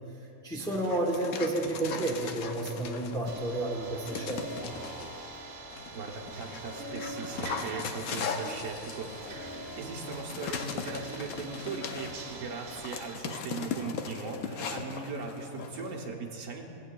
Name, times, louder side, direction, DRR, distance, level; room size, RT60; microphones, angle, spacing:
voice 1, 0.4-4.5, right 1 dB, 5° left, -2 dB, 0.7 m, -31 dB
Dog, 0.6-3.5 4.1-5.1 5.7-16.1, left 6 dB, 90° left, 1.1 m, -39 dB
sound 1, 3.3-13.2, right 5 dB, 90° right, 1.2 m, -47 dB
sound 2, 3.4-13.2, equal, 70° left, 1.7 m, -45 dB
voice 2, 5.7-9.4 9.8-16.7, right 4 dB, 65° right, 1 dB, 1.2 m, -39 dB
18.0 x 8.4 x 2.2 m, 2.9 s
omnidirectional pair, 1.5 m